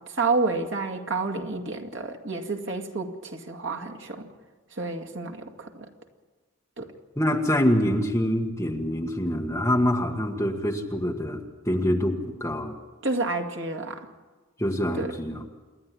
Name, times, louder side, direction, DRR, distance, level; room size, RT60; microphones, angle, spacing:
voice 1, 0.1-4.3 4.7-5.9 6.8-6.9 13.0-14.1 14.9-15.1, right 3 dB, 65° right, 4 dB, 2.2 m, -29 dB
voice 2, 7.2-12.8 14.6-15.4, equal, 15° left, 2 dB, 1.5 m, -25 dB
28.0 x 11.0 x 9.8 m, 1.3 s
head